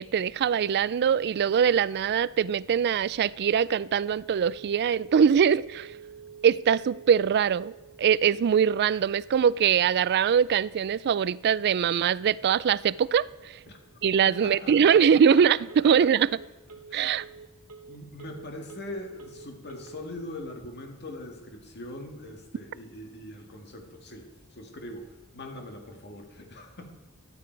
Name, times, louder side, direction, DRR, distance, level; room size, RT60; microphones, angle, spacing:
voice 1, 0.0-5.9 6.4-7.7 8.0-13.6 14.0-16.4 16.9-17.2, right 7 dB, 50° right, 20 dB, 0.3 m, -22 dB
Telephone, 3.9-20.0, right 6 dB, 80° right, 1.4 m, -49 dB
voice 2, 14.3-15.0 15.3-15.4 15.8-15.9 16.2-16.3 16.9-17.2 17.9-26.9, left 1 dB, 50° left, 4 dB, 2.0 m, -42 dB
14.5 x 11.5 x 4.6 m, 1.1 s
head